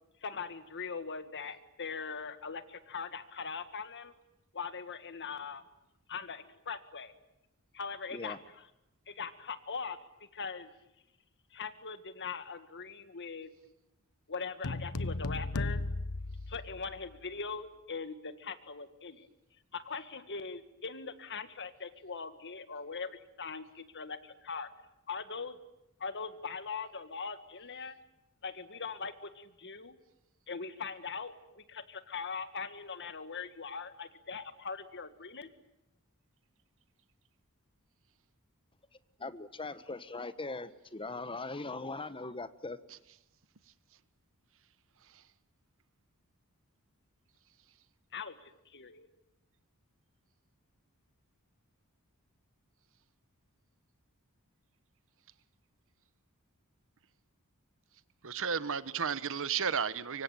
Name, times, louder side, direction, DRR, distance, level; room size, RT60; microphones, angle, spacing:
voice 1, 0.2-4.1 4.5-5.6 6.1-7.1 7.7-8.7 9.1-10.0 10.3-10.7 11.5-13.5 14.3-15.8 16.5-19.3 19.7-24.7 25.1-25.6 26.0-28.0 28.4-30.0 30.5-35.5 48.1-49.1, left 5 dB, 55° left, 11 dB, 1.9 m, -41 dB
sound 1, 14.6-17.2, left 2 dB, 85° left, 1.1 m, -36 dB
voice 2, 39.2-42.8, left 3 dB, 25° left, 13 dB, 1.3 m, -40 dB
voice 3, 58.2-60.2, right 6 dB, 65° right, 16 dB, 1.2 m, -33 dB
25.0 x 24.5 x 9.1 m, 0.88 s
head